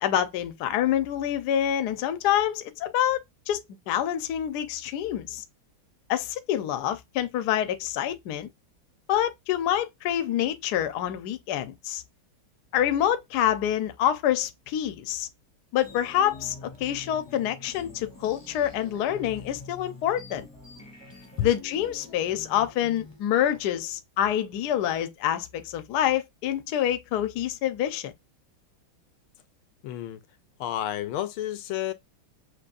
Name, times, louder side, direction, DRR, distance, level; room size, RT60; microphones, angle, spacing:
voice 1, 0.0-5.4 6.1-8.5 9.1-12.0 12.7-15.3 15.7-20.5 21.4-28.1, left 11 dB, 65° left, 1.1 m, -27 dB
sound 1, 15.8-23.2, left 3 dB, 15° left, 0.9 m, -46 dB
voice 2, 29.8-30.2 30.6-31.9, left 11 dB, 90° left, 1.5 m, -30 dB
6.2 x 2.9 x 2.5 m
omnidirectional pair, 2.3 m